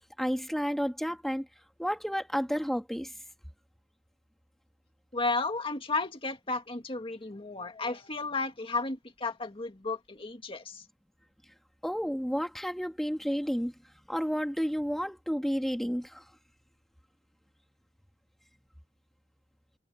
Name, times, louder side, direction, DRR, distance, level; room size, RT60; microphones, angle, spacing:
voice 1, 0.2-1.5 1.8-3.1 11.8-13.7 14.1-16.2, equal, ahead, 2.1 m, -31 dB
voice 2, 5.1-10.8, left 3 dB, 30° left, 2.0 m, -33 dB
head